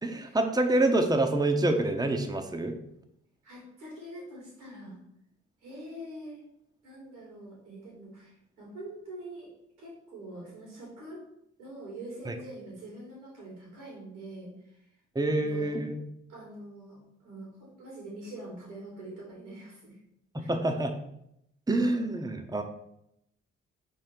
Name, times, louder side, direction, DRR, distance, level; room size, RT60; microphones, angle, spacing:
voice 1, 0.0-2.7 12.3-12.4 15.1-16.0 20.3-20.9 21.7-22.6, right 2 dB, 10° right, 4 dB, 0.9 m, -27 dB
voice 2, 3.4-5.0 5.6-6.4 6.8-9.5 9.8-11.2 11.6-14.5 15.2-15.8 16.3-20.0 20.4-20.5, right 1 dB, 85° right, -4 dB, 2.7 m, -44 dB
5.4 x 4.6 x 5.2 m, 0.78 s
hypercardioid pair, 40°, 34 cm